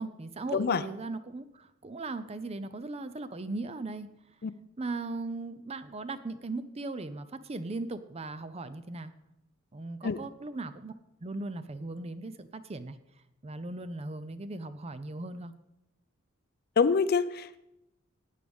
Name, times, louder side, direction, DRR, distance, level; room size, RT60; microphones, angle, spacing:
voice 1, 0.0-4.1 4.8-9.1 9.7-10.9 11.2-13.0 13.4-15.5, right 2 dB, 30° right, 12 dB, 0.5 m, -38 dB
voice 2, 0.5-0.8 4.4-4.5 10.0-10.2 16.8-17.7, left 5 dB, 50° left, 14 dB, 0.4 m, -26 dB
14.5 x 9.5 x 3.6 m, 0.86 s
head